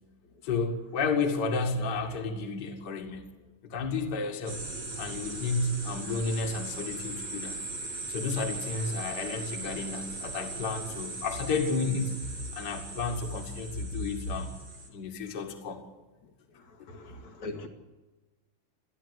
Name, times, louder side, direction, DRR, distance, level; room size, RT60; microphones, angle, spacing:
voice 1, 0.4-3.2 3.6-4.6 5.0-7.6 8.1-12.2 12.5-14.5 14.9-15.8 16.8-16.9, left 4 dB, 35° left, 3 dB, 2.4 m, -31 dB
sound 1, 4.5-14.9, right 3 dB, 65° right, 5.6 m, -39 dB
voice 2, 16.9-17.7, left 2 dB, 60° left, 2 dB, 3.2 m, -40 dB
28.0 x 11.5 x 8.3 m, 1.2 s
omnidirectional pair, 3.7 m